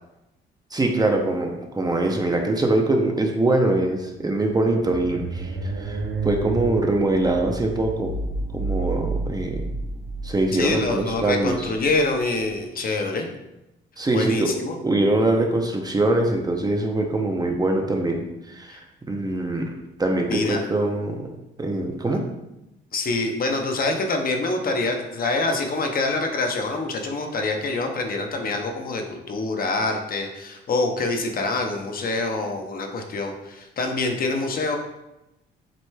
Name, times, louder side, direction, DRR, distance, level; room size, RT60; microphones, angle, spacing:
voice 1, 0.7-8.1 8.5-9.6 10.2-11.7 14.0-19.7 20.0-21.3 21.6-22.2, right 2 dB, 20° right, 2 dB, 0.6 m, -23 dB
sound 1, 4.5-12.5, right 3 dB, 60° right, 0.6 m, -31 dB
voice 2, 10.5-13.3 14.1-14.8 18.7-18.8 20.3-20.6 22.9-34.8, left 3 dB, 45° left, 3 dB, 0.7 m, -25 dB
7.5 x 3.0 x 2.2 m, 0.92 s
cardioid pair, 90°, 20 cm